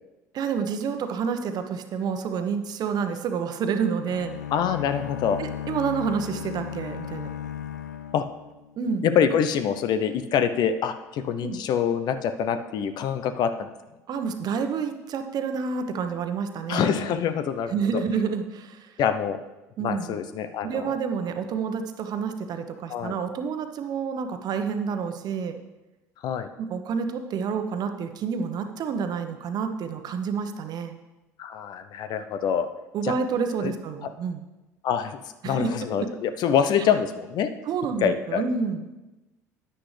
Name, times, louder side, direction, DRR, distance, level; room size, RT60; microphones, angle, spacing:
voice 1, 0.3-4.3 5.4-7.3 8.8-9.0 11.4-11.6 14.1-17.0 17.7-18.9 19.8-20.1 20.6-25.6 26.6-30.9 32.9-34.4 35.4-35.7 36.0-36.1 37.7-38.8, right 6 dB, 50° right, 7 dB, 1.0 m, -29 dB
sound 1, 4.1-9.0, left 9 dB, 90° left, 0.4 m, -36 dB
voice 2, 4.5-5.4 8.1-8.3 9.0-13.7 16.7-17.7 19.0-19.4 19.8-20.9 22.9-23.1 26.2-26.5 31.4-32.7 33.0-33.1 33.6-33.7 34.0-34.1 34.8-37.5 38.0-38.4, left 8 dB, 55° left, 9 dB, 0.7 m, -25 dB
10.0 x 9.8 x 3.3 m, 1.1 s
hypercardioid pair, 65°, 9 cm